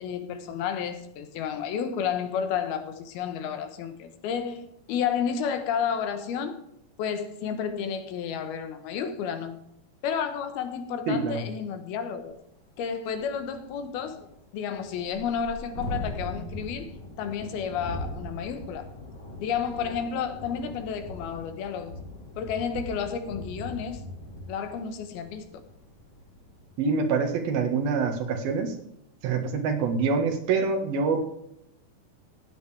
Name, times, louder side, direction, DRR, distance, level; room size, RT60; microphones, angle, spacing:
voice 1, 0.0-6.6 7.0-9.6 10.0-12.4 12.8-14.3 14.5-18.9 19.4-22.0 22.4-24.0 24.5-25.6, left 7 dB, 85° left, 3.1 m, -31 dB
voice 2, 11.1-11.4 26.8-28.7 29.2-31.2, right 4 dB, 75° right, 3.4 m, -25 dB
Thunderstorm, 12.3-12.4 12.7-12.8 13.1-26.8, left 1 dB, 35° left, 2.5 m, -40 dB
15.5 x 9.2 x 3.4 m
omnidirectional pair, 4.3 m